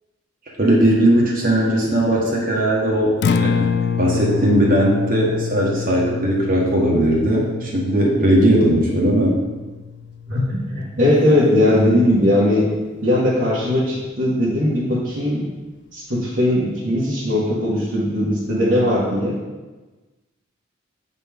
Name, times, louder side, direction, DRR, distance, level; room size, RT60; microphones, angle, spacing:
voice 1, 0.6-3.7 4.0-9.4, right 1 dB, 45° right, -3 dB, 1.5 m, -18 dB
Acoustic guitar, 3.1-11.3, left 6 dB, 55° left, 0.3 m, -27 dB
voice 2, 10.3-12.7 13.0-15.4 15.9-19.4, left 1 dB, 65° right, -9 dB, 1.6 m, -19 dB
8.1 x 4.2 x 3.6 m, 1.2 s
head